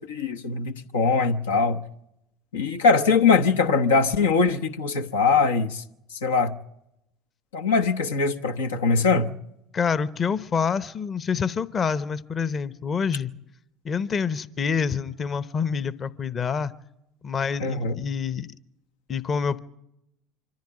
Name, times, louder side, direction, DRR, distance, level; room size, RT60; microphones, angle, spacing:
voice 1, 0.1-1.8 2.5-5.8 6.1-6.5 7.5-9.3 17.6-18.0, left 4 dB, 85° left, 1.0 m, -22 dB
voice 2, 9.7-13.3 13.8-16.7 17.2-18.5 19.1-19.6, left 6 dB, 35° left, 0.9 m, -27 dB
25.0 x 14.5 x 8.8 m
hypercardioid pair, 75°, 0 cm